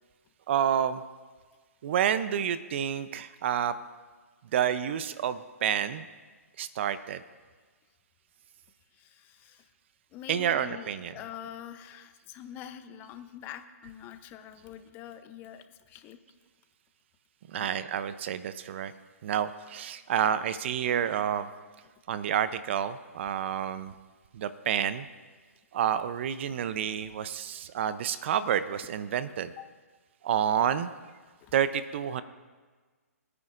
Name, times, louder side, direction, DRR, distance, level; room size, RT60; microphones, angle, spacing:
voice 1, 0.5-1.0 1.8-3.7 4.5-6.1 6.6-7.2 10.3-11.2 17.5-18.9 19.2-21.5 22.1-23.9 24.3-25.1 25.7-29.5 30.2-30.9 31.5-32.2, right 9 dB, 50° right, 13 dB, 0.6 m, -29 dB
voice 2, 8.9-9.7 10.1-16.2 17.6-17.8 26.7-26.9 29.6-29.7 31.4-31.5, left 10 dB, 25° left, 10 dB, 0.6 m, -45 dB
24.0 x 9.6 x 2.5 m, 1.4 s
hypercardioid pair, 135°, 8 cm